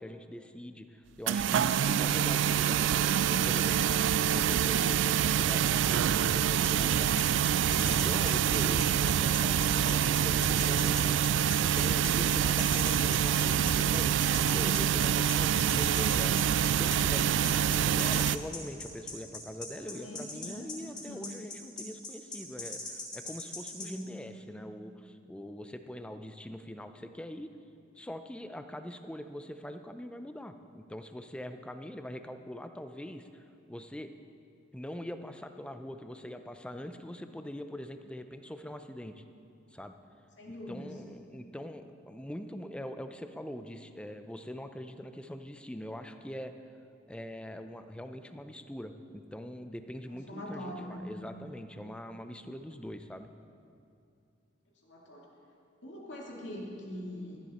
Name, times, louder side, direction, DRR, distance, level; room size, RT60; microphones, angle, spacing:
voice 1, 0.0-7.2 7.8-11.2 11.6-16.4 16.7-27.5 28.0-34.1 34.7-39.2 39.7-39.9 40.5-46.5 47.1-53.3, equal, 5° left, 8 dB, 0.5 m, -43 dB
sound 1, 1.3-18.4, right 9 dB, 70° right, 0.3 m, -26 dB
sound 2, 6.6-23.9, left 3 dB, 25° left, 2.1 m, -40 dB
voice 2, 19.8-20.7 21.1-21.2 23.8-24.1 40.4-40.9 50.1-51.1 54.8-55.2 55.8-57.4, left 1 dB, 70° left, -2 dB, 2.3 m, -42 dB
15.0 x 11.0 x 4.2 m, 2.5 s
head